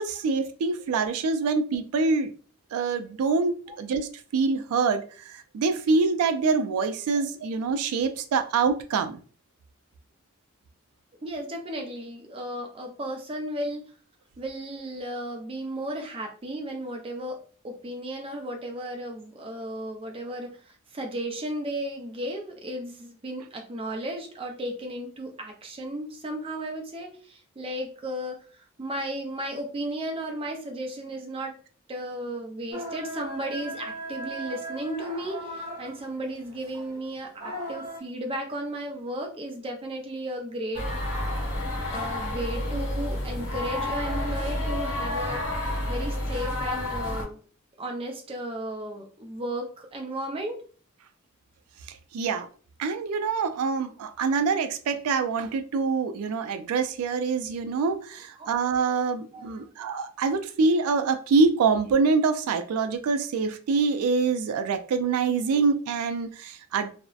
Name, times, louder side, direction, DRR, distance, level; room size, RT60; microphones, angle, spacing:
voice 1, 0.0-2.3 2.7-9.2 51.9-52.5 52.8-66.9, right 4 dB, 90° right, 8 dB, 0.3 m, -25 dB
voice 2, 11.2-13.9 14.4-28.5 28.8-31.6 31.9-40.8 41.9-47.4 47.8-50.6 58.4-58.5 59.3-59.7, right 1 dB, 25° right, 2 dB, 0.4 m, -34 dB
sound 1, 32.7-38.0, equal, 45° right, 1.0 m, -38 dB
sound 2, 40.7-47.2, left 1 dB, 60° left, 0.6 m, -30 dB
2.6 x 2.0 x 2.3 m, 0.40 s
head